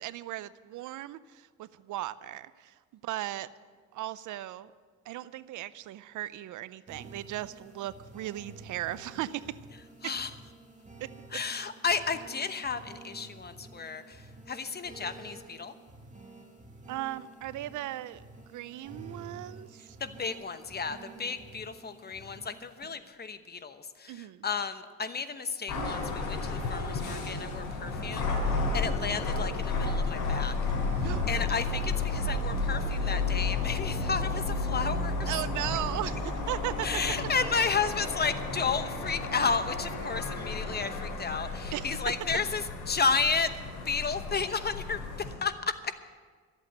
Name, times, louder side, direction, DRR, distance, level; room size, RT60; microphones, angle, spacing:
voice 1, 0.0-2.7 3.0-3.5 3.9-4.7 5.1-9.6 10.0-10.1 11.0-11.1 16.9-18.2 18.5-20.0 24.1-24.4 31.0-31.3 35.3-36.9 41.7-42.0, right 14 dB, 80° right, 17 dB, 0.6 m, -37 dB
sound 1, 6.9-22.9, right 2 dB, 25° right, 2.4 m, -50 dB
voice 2, 11.3-14.2 14.5-15.7 20.0-28.3 28.7-30.5 31.3-35.3 36.8-43.5 43.9-45.0 45.4-45.5, left 5 dB, 35° left, 10 dB, 1.0 m, -32 dB
sound 2, 25.7-45.4, left 3 dB, 85° left, 4.4 m, -32 dB
13.5 x 8.3 x 9.2 m, 1.6 s
cardioid pair, 90°, 30 cm